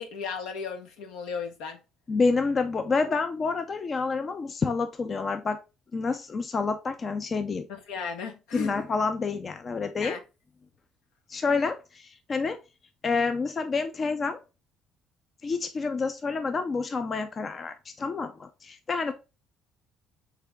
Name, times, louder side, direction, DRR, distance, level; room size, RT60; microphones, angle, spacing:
voice 1, 0.0-1.8 7.7-8.8 10.0-10.2, left 5 dB, 80° left, 0.9 m, -35 dB
voice 2, 2.1-5.6 5.9-7.7 8.5-10.2 11.3-12.6 13.0-14.4 15.4-19.1, left 4 dB, 40° left, 0.5 m, -28 dB
3.7 x 3.3 x 3.3 m
supercardioid pair, 70°, 0 cm